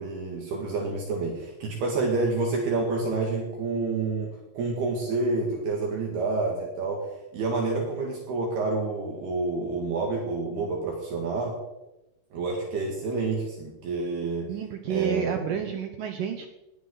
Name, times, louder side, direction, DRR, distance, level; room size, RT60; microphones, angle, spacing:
voice 1, 0.0-7.0 7.3-11.6 12.3-14.5 14.9-15.6, right 3 dB, 65° right, -1 dB, 4.0 m, -28 dB
voice 2, 14.5-16.5, right 7 dB, 85° right, 6 dB, 1.9 m, -30 dB
20.0 x 12.0 x 4.0 m, 0.94 s
omnidirectional pair, 5.1 m